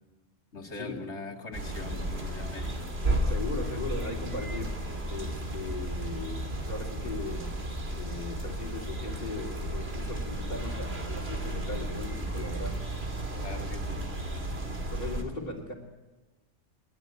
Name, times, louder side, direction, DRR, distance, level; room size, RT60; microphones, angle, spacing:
voice 1, 0.5-2.9 13.4-14.1, left 3 dB, 80° left, 4 dB, 2.6 m, -41 dB
sound 1, 1.5-15.2, right 1 dB, 65° right, 3.1 m, -33 dB
voice 2, 3.3-4.7 5.1-7.5 8.0-12.8 14.9-15.7, left 2 dB, 45° left, -4 dB, 2.7 m, -38 dB
21.5 x 21.5 x 9.0 m, 1.2 s
omnidirectional pair, 1.1 m